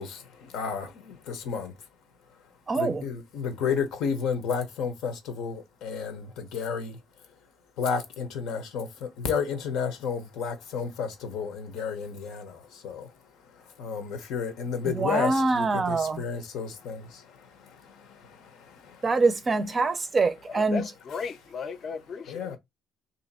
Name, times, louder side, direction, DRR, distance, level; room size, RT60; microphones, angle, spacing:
voice 1, 0.0-1.7 2.8-7.0 7.8-13.1 13.8-19.0 22.3-22.6, left 6 dB, 90° left, 0.9 m, -32 dB
voice 2, 2.7-3.0 14.8-16.2 19.0-20.8, right 3 dB, 25° right, 0.5 m, -25 dB
voice 3, 20.5-22.6, left 5 dB, 40° left, 0.5 m, -36 dB
3.2 x 2.8 x 4.1 m
cardioid pair, 160°, 0 cm